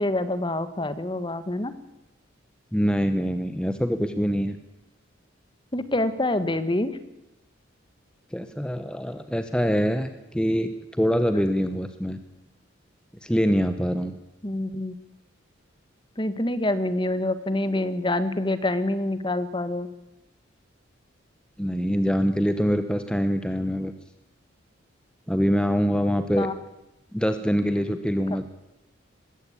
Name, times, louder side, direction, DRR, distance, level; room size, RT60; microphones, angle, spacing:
voice 1, 0.0-1.7 5.7-6.9 14.4-14.9 16.2-19.9 26.4-26.5, left 1 dB, 25° left, 13 dB, 1.3 m, -26 dB
voice 2, 2.7-4.6 8.3-12.2 13.2-14.1 21.6-23.9 25.3-26.5 27.1-28.5, equal, 5° left, 9 dB, 1.0 m, -24 dB
21.0 x 16.0 x 8.5 m, 0.96 s
head